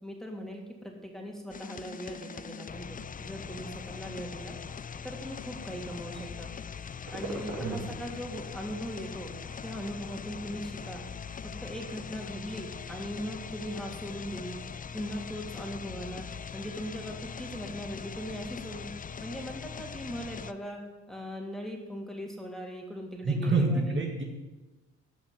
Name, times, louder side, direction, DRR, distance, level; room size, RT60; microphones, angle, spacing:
voice 1, 0.0-4.6 5.0-6.5 7.1-9.3 9.6-11.0 11.4-14.6 14.9-16.2 16.5-18.9 19.2-20.8 21.1-24.0, equal, ahead, 0 dB, 3.0 m, -39 dB
sound 1, 1.5-20.5, left 6 dB, 30° left, 0.5 m, -41 dB
sound 2, 7.0-16.9, right 2 dB, 65° right, 3.0 m, -48 dB
voice 2, 23.2-24.2, right 3 dB, 40° right, 1 dB, 1.9 m, -27 dB
14.5 x 5.7 x 9.1 m, 1.2 s
cardioid pair, 90°, 30 cm